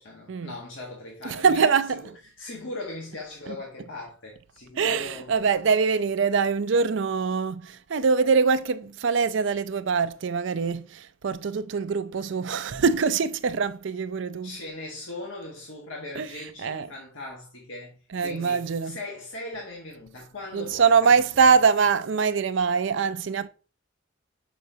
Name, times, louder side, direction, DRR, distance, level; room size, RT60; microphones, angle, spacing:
voice 1, 0.0-1.7 2.2-5.3 14.4-21.1 21.4-21.5, left 2 dB, 70° left, 1.5 m, -39 dB
voice 2, 1.2-2.0 3.5-3.6 4.8-14.6 16.2-16.3 16.6-16.9 18.1-19.0 20.5-23.5, right 5 dB, 65° right, 0.4 m, -23 dB
6.8 x 5.1 x 2.7 m
head